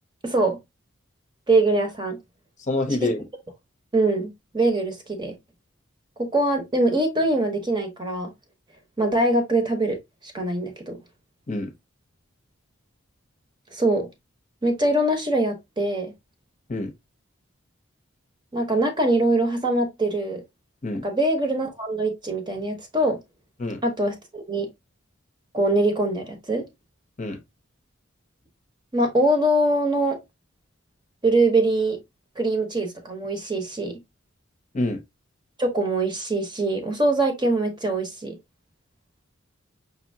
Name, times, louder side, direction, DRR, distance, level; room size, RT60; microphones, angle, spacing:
voice 1, 0.2-0.6 1.5-2.2 3.9-5.3 6.2-8.3 9.0-10.0 10.3-11.0 13.7-14.1 14.6-16.1 18.5-20.4 21.0-23.2 23.8-24.7 25.5-26.6 28.9-30.2 31.2-32.0 32.4-34.0 35.6-38.4, right 2 dB, 25° right, 0.9 m, -23 dB
voice 2, 2.7-3.2 11.5-11.7 16.7-16.9 20.8-21.0 23.6-23.8 27.2-27.4 34.7-35.0, left 2 dB, 35° left, 0.8 m, -26 dB
5.3 x 2.8 x 2.7 m
head